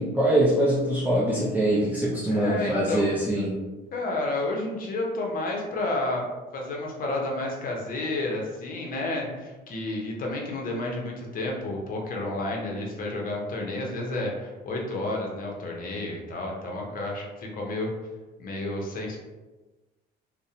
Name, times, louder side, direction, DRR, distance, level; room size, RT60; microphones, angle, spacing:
voice 1, 0.0-3.6, right 1 dB, 10° right, -8 dB, 0.5 m, -23 dB
voice 2, 2.3-3.1 3.9-6.2 6.5-17.9 18.4-19.2, left 2 dB, 50° left, 0 dB, 0.7 m, -31 dB
2.5 x 2.1 x 2.7 m, 1.2 s
cardioid pair, 110°, 19 cm